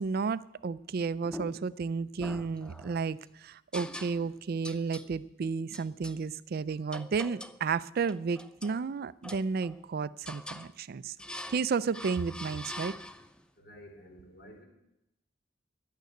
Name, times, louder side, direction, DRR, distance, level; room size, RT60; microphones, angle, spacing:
voice 1, 0.0-11.1 11.5-12.9, right 5 dB, 55° right, 17 dB, 0.4 m, -32 dB
sound 1, 1.3-1.8 2.2-3.1 3.7-4.4 4.6-5.1 5.7-6.2 6.9-7.6 8.0-8.8 9.2-9.9 10.3-10.7 11.2-11.7 11.9-13.4, left 1 dB, 5° left, 0.5 m, -44 dB
voice 2, 13.6-14.6, equal, 60° left, 2 dB, 3.9 m, -51 dB
11.5 x 9.2 x 9.3 m, 0.85 s
head